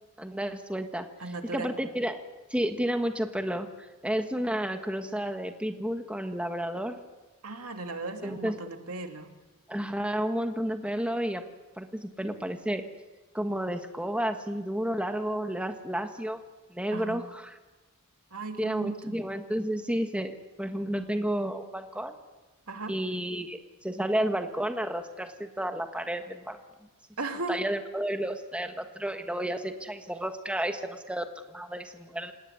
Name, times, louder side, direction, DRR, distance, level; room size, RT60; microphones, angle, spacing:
voice 1, 0.2-1.1 1.5-2.2 2.5-3.7 4.0-7.0 8.2-8.5 9.7-11.4 11.8-12.8 13.3-16.4 16.7-17.6 18.6-22.2 22.9-23.6 23.8-26.6 27.5-32.3, right 1 dB, 5° right, 6 dB, 1.6 m, -31 dB
voice 2, 1.2-1.7 7.4-9.3 16.9-17.2 18.3-19.2 22.7-22.9 27.2-27.6, right 3 dB, 75° right, 5 dB, 2.7 m, -36 dB
27.0 x 18.5 x 9.9 m, 1.2 s
head